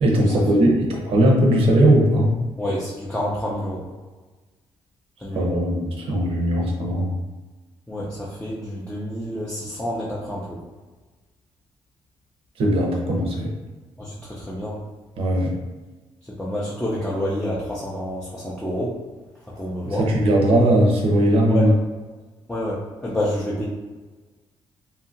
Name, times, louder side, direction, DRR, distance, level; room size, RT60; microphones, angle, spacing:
voice 1, 0.0-2.3 5.3-7.1 12.6-13.5 15.2-15.5 20.1-21.7, right 1 dB, 65° right, -1 dB, 0.7 m, -19 dB
voice 2, 2.6-3.9 5.2-5.5 7.9-10.6 14.0-14.8 16.2-19.0 19.4-20.1 21.5-21.7 22.5-23.6, left 1 dB, 10° left, -7 dB, 0.5 m, -28 dB
2.7 x 2.4 x 2.6 m, 1.3 s
cardioid pair, 110°, 10 cm